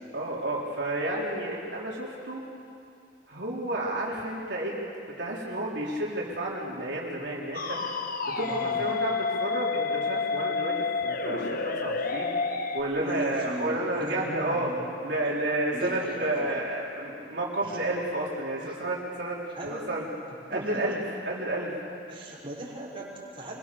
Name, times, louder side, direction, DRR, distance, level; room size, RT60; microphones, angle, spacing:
voice 1, 0.1-2.5 3.3-4.8 5.2-7.8 8.4-12.4 12.7-14.7 15.0-20.0 20.5-21.0 21.3-21.7, right 1 dB, 70° right, -4 dB, 4.0 m, -31 dB
sound 1, 7.5-12.8, left 4 dB, 50° left, 1.3 m, -29 dB
voice 2, 8.3-8.8 13.0-14.8 15.2-15.4 15.7-16.6 17.6-17.8 18.6-18.8 19.5-20.0 20.5-20.9 22.1-23.6, right 1 dB, 30° right, -6 dB, 5.2 m, -38 dB
26.0 x 22.5 x 7.0 m, 2.4 s
head